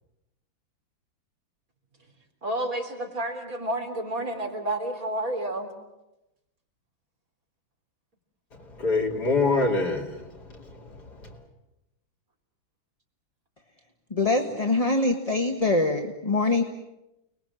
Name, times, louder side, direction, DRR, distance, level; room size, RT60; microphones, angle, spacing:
voice 1, 2.4-5.7, right 1 dB, 45° right, 4.2 m, -30 dB
voice 2, 8.8-10.3 10.5-11.4, left 3 dB, 55° left, 3.3 m, -26 dB
voice 3, 14.1-16.6, left 2 dB, 20° left, 1.4 m, -24 dB
30.0 x 21.0 x 7.8 m
omnidirectional pair, 2.1 m